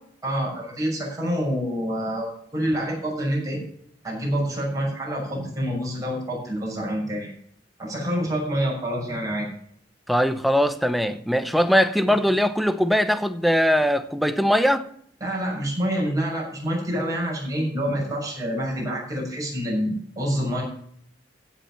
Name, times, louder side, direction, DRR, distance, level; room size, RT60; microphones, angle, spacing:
voice 1, 0.2-3.6 4.0-7.3 7.8-9.5 12.1-12.2 15.2-20.6, equal, 20° right, 6.5 m, -27 dB
voice 2, 10.1-14.9, equal, ahead, 0.8 m, -21 dB
15.0 x 7.5 x 5.7 m
head